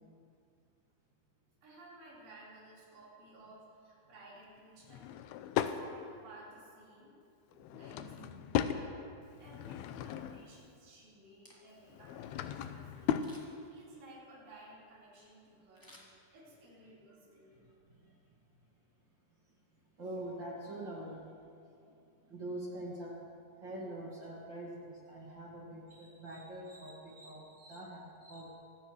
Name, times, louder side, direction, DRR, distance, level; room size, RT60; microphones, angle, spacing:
voice 1, 1.6-5.1 5.5-7.2 7.7-9.0 9.4-16.0 16.3-17.6, right 1 dB, 80° right, -7 dB, 7.0 m, -56 dB
Drawer open or close / Wood, 4.8-5.8 7.5-8.8 9.4-10.5 11.8-13.4, left 10 dB, 85° left, 2.2 m, -36 dB
voice 2, 7.7-8.4 11.6-11.7 17.6-18.2 20.0-21.4 21.8-21.9 22.3-23.2 23.6-28.5, right 1 dB, 35° right, -4 dB, 1.9 m, -45 dB
Camera, 11.4-12.0 13.1-13.7 15.7-16.7 17.1-17.2, equal, 10° left, 1.3 m, -59 dB
26.0 x 16.5 x 3.3 m, 2.4 s
omnidirectional pair, 5.2 m